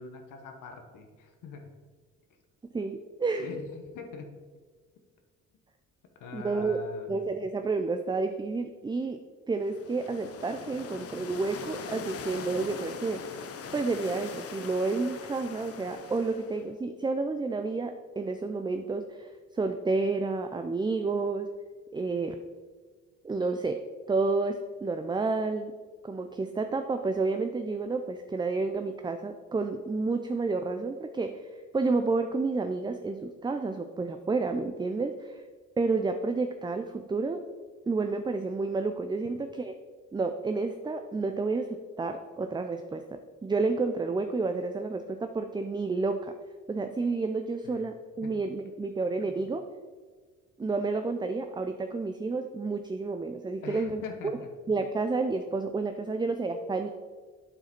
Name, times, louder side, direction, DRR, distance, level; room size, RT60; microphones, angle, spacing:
voice 1, 0.0-1.7 3.4-4.3 6.2-7.1 47.6-47.8 48.2-48.4 49.3-49.4 53.6-54.5, left 4 dB, 75° left, 4 dB, 1.0 m, -43 dB
voice 2, 2.7-3.4 6.3-6.8 7.1-9.2 9.5-13.2 13.7-21.5 21.9-22.4 23.2-23.8 24.1-25.7 26.0-31.4 31.7-35.4 35.8-37.4 37.9-39.7 40.1-46.3 46.7-49.6 50.6-54.0 54.7-56.9, right 3 dB, 15° right, 7 dB, 0.4 m, -30 dB
sound 1, 9.6-16.7, left 6 dB, 50° left, 0.8 m, -41 dB
8.8 x 4.8 x 4.4 m, 1.5 s
cardioid pair, 75°, 31 cm